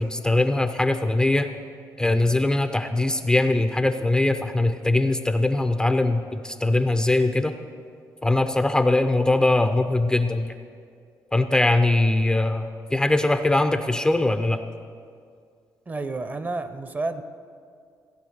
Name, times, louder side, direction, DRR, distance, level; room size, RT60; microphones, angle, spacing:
voice 1, 0.0-1.5 2.0-7.5 8.2-10.5 11.3-14.6, left 2 dB, 10° left, 8 dB, 0.5 m, -21 dB
voice 2, 15.9-17.2, right 3 dB, 25° right, 10 dB, 0.7 m, -30 dB
15.5 x 9.1 x 6.5 m, 2.2 s
cardioid pair, 125°, 7 cm